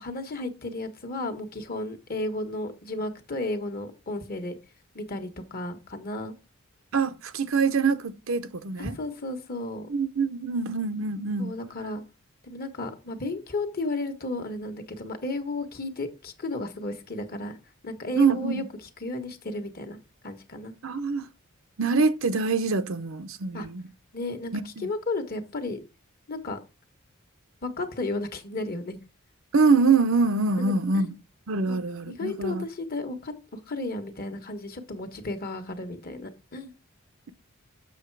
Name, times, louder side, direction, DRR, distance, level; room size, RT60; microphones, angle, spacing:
voice 1, 0.0-4.5 4.9-6.3 8.8-9.9 11.4-12.0 12.4-17.6 17.8-18.6 19.0-20.0 20.2-20.7 23.5-23.7 24.1-25.8 26.3-26.6 27.6-29.0 30.6-31.1 31.7-36.7, left 2 dB, 45° left, 1.4 m, -33 dB
voice 2, 6.9-9.0 9.9-11.5 18.2-18.7 20.8-21.3 21.8-23.8 24.5-24.9 29.5-31.1 31.5-32.6, right 4 dB, 75° right, 0.7 m, -24 dB
7.1 x 6.5 x 4.7 m
head